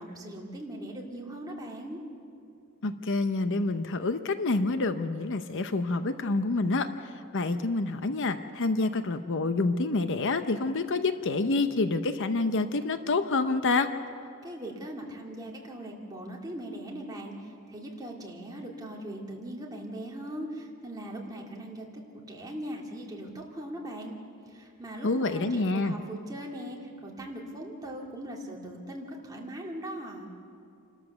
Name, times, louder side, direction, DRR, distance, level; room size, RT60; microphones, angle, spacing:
voice 1, 0.0-2.0 14.4-22.0 22.3-24.1 24.5-30.3, right 1 dB, 15° right, -2 dB, 2.4 m, -40 dB
voice 2, 2.8-13.9 25.0-26.0, left 3 dB, 55° left, 10 dB, 0.7 m, -27 dB
28.5 x 13.0 x 7.0 m, 2.5 s
head